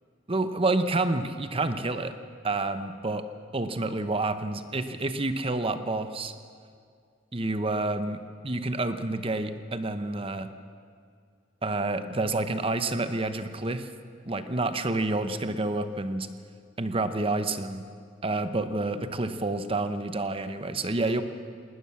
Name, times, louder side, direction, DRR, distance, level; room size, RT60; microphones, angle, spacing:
voice 1, 0.3-2.1 2.4-3.2 3.5-6.3 7.3-10.5 11.6-13.9 14.3-16.3 16.8-17.8 18.2-21.2, right 2 dB, 30° right, 10 dB, 0.9 m, -29 dB
19.5 x 19.0 x 7.2 m, 2.2 s
head